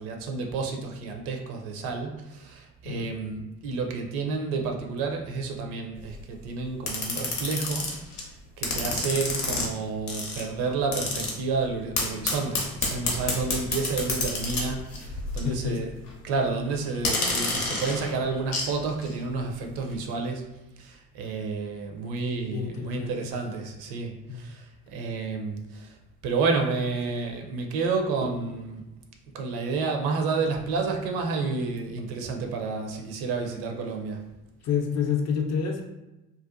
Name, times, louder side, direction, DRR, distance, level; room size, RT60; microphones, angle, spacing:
voice 1, 0.0-15.9 16.2-20.5 20.8-26.0 26.2-28.8 29.3-34.2, right 4 dB, 55° right, 3 dB, 0.6 m, -30 dB
sound 1, 6.0-6.2 6.9-8.2 8.6-9.7 10.1-10.4 10.9-11.3 12.0-15.6 15.9-16.1 17.0-18.7 19.0-19.1, left 3 dB, 85° left, 0.7 m, -29 dB
voice 2, 15.4-15.9 22.5-23.2 24.3-24.5 34.6-35.8, left 7 dB, 40° left, 2 dB, 0.4 m, -28 dB
2.6 x 2.2 x 2.4 m, 0.97 s
hypercardioid pair, 55°, 45 cm